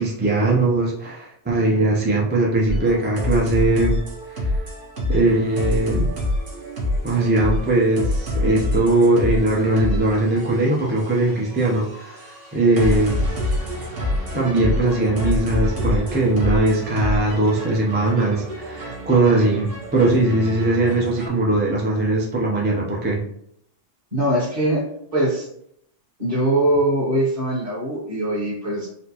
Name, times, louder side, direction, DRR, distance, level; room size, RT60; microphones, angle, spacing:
voice 1, 0.0-4.0 4.3-4.6 5.1-6.1 7.0-13.3 14.3-23.2, right 2 dB, 15° right, -3 dB, 0.4 m, -20 dB
sound 1, 2.7-21.3, left 1 dB, 50° right, 1.2 m, -27 dB
voice 2, 24.1-24.8 25.1-25.5 26.2-28.9, right 1 dB, 30° right, -11 dB, 1.2 m, -21 dB
4.2 x 2.1 x 2.8 m, 0.71 s
omnidirectional pair, 1.2 m